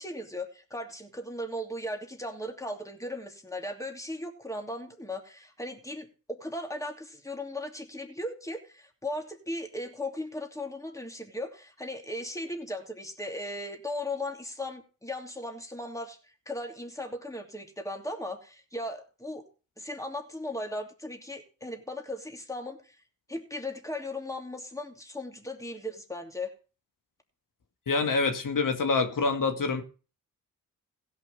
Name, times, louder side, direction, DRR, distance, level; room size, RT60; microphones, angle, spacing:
voice 1, 0.0-16.2 16.5-19.4 19.8-23.0 23.3-26.5, left 1 dB, 10° left, 2.8 m, -37 dB
voice 2, 27.9-29.8, left 4 dB, 60° left, 1.9 m, -26 dB
16.5 x 5.6 x 5.4 m
cardioid pair, 55°, 36 cm